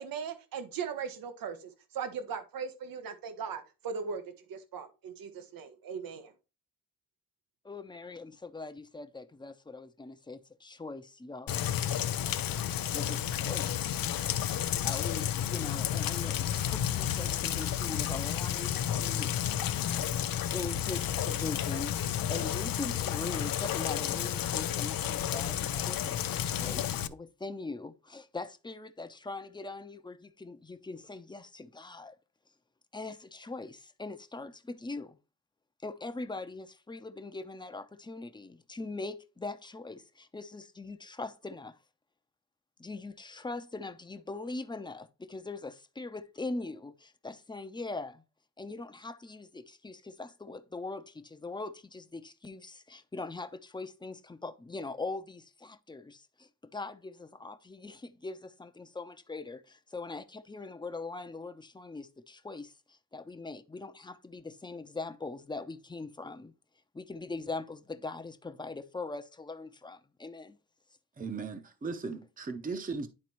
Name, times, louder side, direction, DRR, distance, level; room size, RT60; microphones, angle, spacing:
voice 1, 0.0-4.2 4.5-6.3 12.2-12.8, right 6 dB, 85° right, 0.9 m, -39 dB
voice 2, 7.6-11.7 12.7-13.9 14.5-19.5 20.5-32.1 32.9-35.2 35.8-41.8 42.8-48.2 48.6-66.5 66.9-70.6, left 3 dB, 15° left, 0.6 m, -41 dB
Rain, 11.5-27.1, left 10 dB, 85° left, 0.5 m, -31 dB
voice 3, 71.2-73.1, right 4 dB, 25° right, 0.7 m, -37 dB
11.0 x 4.1 x 3.0 m
cardioid pair, 100°, 34 cm